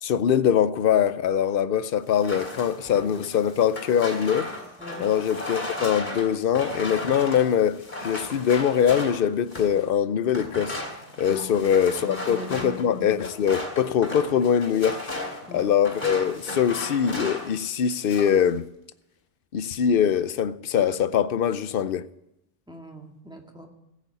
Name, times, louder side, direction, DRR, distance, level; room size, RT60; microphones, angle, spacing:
voice 1, 0.0-4.5 5.0-10.8 11.2-15.1 15.5-18.7 19.5-22.0, left 8 dB, 60° left, 0.8 m, -23 dB
sound 1, 2.1-9.8 10.3-17.6 17.9-18.4, left 1 dB, 45° left, 3.1 m, -35 dB
voice 2, 11.3-11.6 12.0-13.2 15.5-15.6 22.7-23.7, left 2 dB, 5° right, 2.0 m, -40 dB
14.5 x 8.4 x 8.3 m
omnidirectional pair, 1.1 m